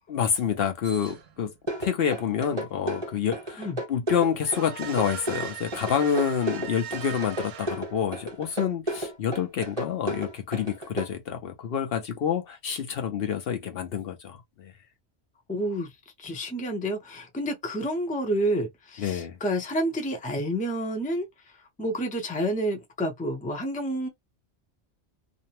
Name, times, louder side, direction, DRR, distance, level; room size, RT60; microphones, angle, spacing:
voice 1, 0.1-1.5 1.8-14.7 19.0-19.4, left 7 dB, 65° left, 0.8 m, -28 dB
sound 1, 0.8-1.6 4.4-8.3, right 8 dB, 70° right, 0.8 m, -40 dB
sound 2, 1.7-11.1, right 1 dB, 30° right, 1.0 m, -32 dB
voice 2, 15.5-15.9 16.2-21.3 21.8-24.1, equal, 10° left, 0.5 m, -29 dB
2.6 x 2.0 x 2.8 m
omnidirectional pair, 1.1 m